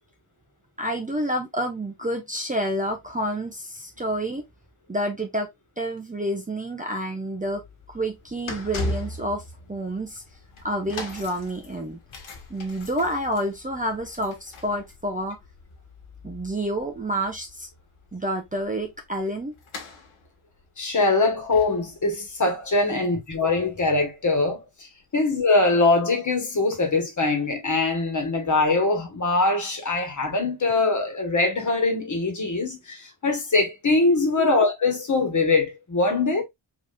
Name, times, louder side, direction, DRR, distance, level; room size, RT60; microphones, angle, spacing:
voice 1, 0.8-4.4 4.9-5.5 5.8-7.6 7.9-10.2 10.6-12.0 12.5-15.4 16.2-17.7 18.1-19.5 34.4-34.5, right 1 dB, 15° right, 0.8 m, -29 dB
sound 1, 7.4-24.4 25.0-25.1, left 2 dB, 75° left, 1.7 m, -40 dB
voice 2, 20.8-24.6 25.1-36.4, left 3 dB, 35° left, 1.6 m, -22 dB
4.7 x 3.7 x 2.6 m
wide cardioid pair, 145°, 49 cm